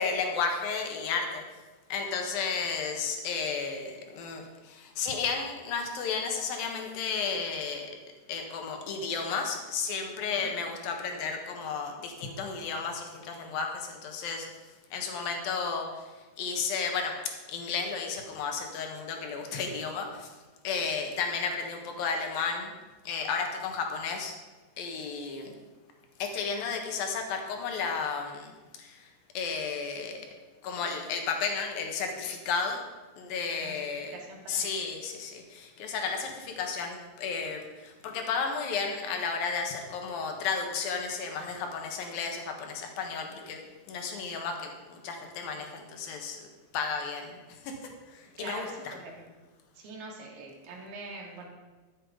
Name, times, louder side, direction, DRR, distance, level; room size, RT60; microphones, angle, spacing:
voice 1, 0.0-1.4 1.9-7.9 8.3-14.5 14.9-15.9 16.4-17.1 17.5-20.4 20.6-22.7 23.0-24.3 24.8-25.5 26.2-28.5 28.8-30.2 30.6-32.8 33.2-34.1 34.5-43.6 43.9-46.5 46.7-49.0, left 5 dB, 65° left, 3 dB, 2.8 m, -33 dB
voice 2, 34.1-34.8 48.4-49.3 49.8-51.5, right 3 dB, 65° right, -1 dB, 3.8 m, -44 dB
13.0 x 8.0 x 5.1 m, 1.3 s
omnidirectional pair, 5.1 m